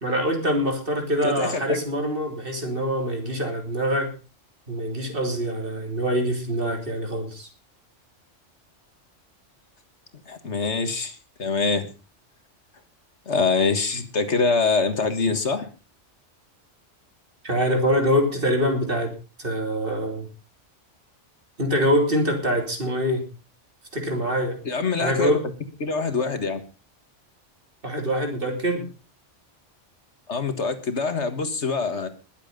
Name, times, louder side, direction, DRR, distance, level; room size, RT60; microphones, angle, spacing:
voice 1, 0.0-4.1 4.7-7.5 17.4-20.3 21.6-23.2 23.9-24.6 25.0-25.4 27.8-28.9, equal, 50° right, 3 dB, 3.5 m, -24 dB
voice 2, 1.2-1.8 10.3-11.9 13.3-15.7 24.7-25.4 25.8-26.6 30.3-32.1, left 4 dB, 70° left, 9 dB, 2.0 m, -24 dB
21.0 x 7.8 x 5.2 m, 0.34 s
omnidirectional pair, 1.2 m